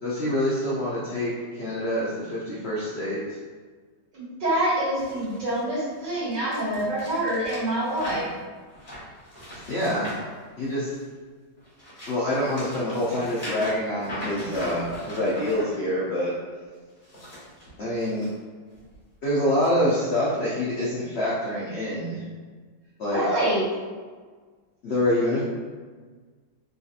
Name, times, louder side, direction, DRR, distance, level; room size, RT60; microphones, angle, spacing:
voice 1, 0.0-3.4 9.7-10.1 10.6-10.9 12.1-16.3 17.8-18.3 19.2-22.2 23.0-23.2 24.8-25.4, left 1 dB, 85° left, -7 dB, 0.5 m, -26 dB
voice 2, 4.1-8.3 23.1-23.6, right 1 dB, 70° right, -10 dB, 2.1 m, -26 dB
sound 1, 5.0-11.1 11.6-15.6 16.9-18.3 18.7-19.0 19.6-19.7, equal, 25° left, 0.9 m, -40 dB
3.8 x 2.7 x 2.4 m, 1.5 s
omnidirectional pair, 2.0 m